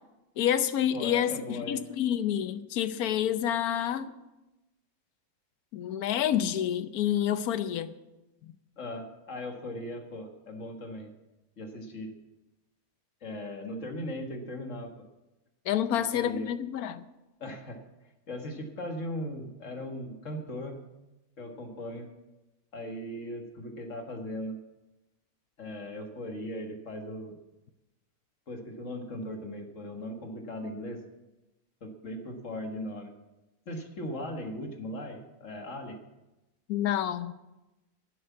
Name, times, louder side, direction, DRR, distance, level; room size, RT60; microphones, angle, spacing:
voice 1, 0.4-4.1 5.7-7.9 15.7-17.0 36.7-37.3, left 10 dB, 85° left, 1.2 m, -28 dB
voice 2, 0.9-1.9 8.8-11.1 11.6-12.1 13.2-14.9 15.9-16.5 17.4-17.8 18.3-20.8 21.4-22.1 22.7-24.6 25.6-27.4 28.5-31.0 31.8-33.1 33.7-36.0, left 1 dB, 60° left, 1.9 m, -38 dB
10.5 x 7.8 x 9.3 m
omnidirectional pair, 1.5 m